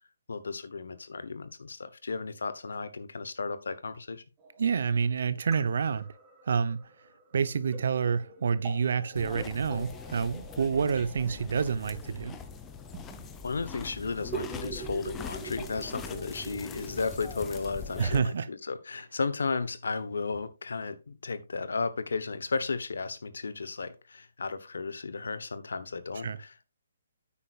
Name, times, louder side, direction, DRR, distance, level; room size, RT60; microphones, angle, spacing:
voice 1, 0.3-4.2 13.4-26.7, left 4 dB, 80° left, 1.1 m, -34 dB
sound 1, 4.4-18.2, right 6 dB, 20° right, 2.4 m, -46 dB
voice 2, 4.6-6.1 6.4-6.9 7.3-12.4 18.0-18.5 26.2-26.4, right 6 dB, 65° right, 0.9 m, -28 dB
sound 2, 9.2-18.2, left 7 dB, 15° left, 0.8 m, -43 dB
9.9 x 8.5 x 2.5 m
hypercardioid pair, 150°, 0 cm